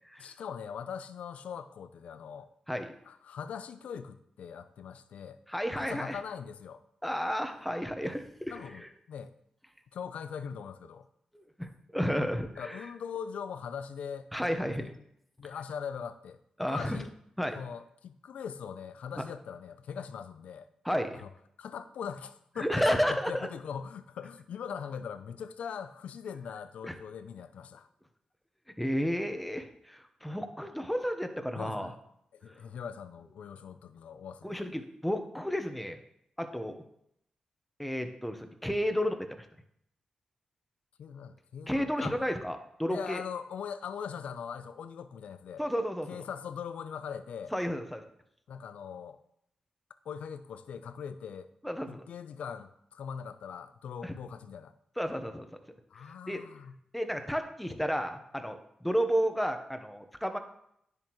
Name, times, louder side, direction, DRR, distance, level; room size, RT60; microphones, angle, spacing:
voice 1, 0.2-2.5 3.1-5.4 5.8-6.8 8.5-9.3 9.9-11.1 12.6-14.9 15.4-16.4 16.7-17.1 17.6-20.7 21.2-21.3 21.6-27.9 31.5-32.0 32.3-34.6 41.0-42.2 42.9-45.6 46.1-47.5 48.5-49.2 50.0-51.5 51.9-54.7 55.9-56.7, left 7 dB, 85° left, 12 dB, 0.5 m, -41 dB
voice 2, 5.5-6.2 7.0-8.9 11.3-12.9 14.3-14.9 16.6-17.0 17.4-17.6 19.2-19.3 20.8-21.2 22.6-23.5 26.8-26.9 28.8-31.9 34.4-36.0 36.4-36.8 37.8-39.4 41.7-43.2 45.6-46.2 47.5-48.0 51.6-52.0 54.0-54.1 55.0-55.5 56.3-56.4 56.9-60.4, equal, 5° left, 6 dB, 1.0 m, -32 dB
10.0 x 7.2 x 3.1 m, 0.75 s
cardioid pair, 70°, 2 cm